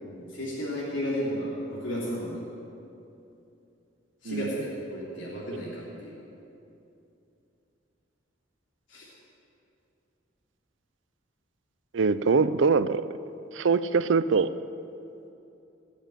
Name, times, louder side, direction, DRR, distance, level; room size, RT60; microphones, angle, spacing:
voice 1, 0.0-2.4 4.2-6.2 8.9-9.1, equal, 85° left, -7 dB, 3.1 m, -33 dB
voice 2, 11.9-13.0 13.5-14.5, right 4 dB, 80° right, 14 dB, 0.5 m, -23 dB
18.5 x 7.1 x 9.0 m, 2.8 s
head